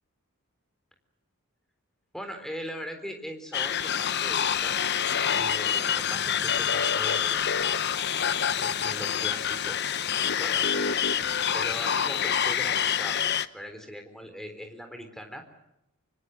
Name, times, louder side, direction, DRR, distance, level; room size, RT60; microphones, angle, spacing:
voice 1, 2.1-4.7 5.3-7.5 8.6-9.8 10.4-13.2 13.5-15.4, equal, ahead, 6 dB, 3.8 m, -40 dB
sound 1, 3.5-13.5, left 8 dB, 50° left, 0.9 m, -26 dB
25.5 x 25.0 x 7.9 m, 0.83 s
head